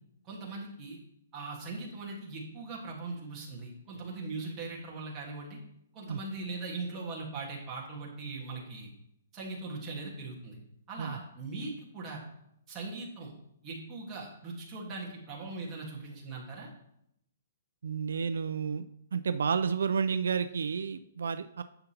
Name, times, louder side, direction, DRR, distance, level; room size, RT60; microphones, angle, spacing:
voice 1, 0.3-1.0 1.3-5.6 5.9-8.9 9.3-10.6 10.9-12.2 12.7-13.3 13.6-16.7, right 3 dB, 15° right, -4 dB, 1.6 m, -40 dB
voice 2, 17.8-18.9 19.1-21.6, right 6 dB, 80° right, 11 dB, 0.4 m, -31 dB
10.5 x 6.8 x 2.9 m, 0.75 s
hypercardioid pair, 180°, 0 cm